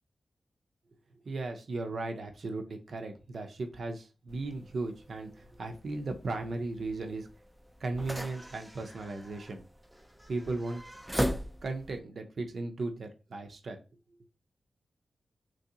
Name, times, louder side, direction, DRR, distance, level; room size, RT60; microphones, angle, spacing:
voice 1, 1.2-7.3 7.8-9.6 10.3-10.8 11.6-13.8, right 2 dB, 70° right, 5 dB, 0.5 m, -36 dB
sound 1, 4.3-12.0, equal, 10° right, 0.4 m, -39 dB
3.1 x 2.6 x 2.7 m, 0.31 s
cardioid pair, 40°, 0 cm